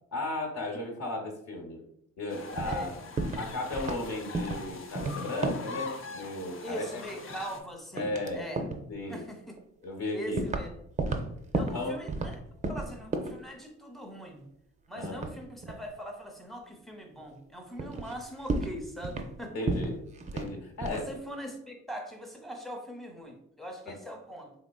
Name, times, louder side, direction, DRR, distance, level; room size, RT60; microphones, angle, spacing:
voice 1, 0.1-1.8 2.2-3.0 3.4-6.8 7.9-8.5 8.9-9.2 9.8-10.4 11.0-11.2 11.7-12.0 14.9-15.2 19.5-20.0 20.3-21.0 23.9-24.0, left 2 dB, 60° left, 1 dB, 1.0 m, -35 dB
sound 1, 2.3-7.6, left 4 dB, 45° left, 0.6 m, -43 dB
sound 2, 2.3-2.9 3.2-3.5 3.7-4.0 4.3-4.7 5.0-5.7 6.9-7.6 8.0-8.3 8.6-8.9 9.6-9.7 10.4-10.7 11.0-12.4 12.6-13.4 15.0-15.8 17.3-17.4 17.8-18.2 18.5-19.4 19.7-20.5 20.8-21.1, right 2 dB, 25° right, 0.4 m, -33 dB
voice 2, 6.6-8.7 9.1-9.6 10.1-10.7 11.5-12.4 12.7-14.5 14.9-19.9 20.9-24.5, equal, ahead, 3 dB, 0.7 m, -41 dB
3.6 x 3.3 x 2.3 m, 0.73 s
cardioid pair, 90°, 30 cm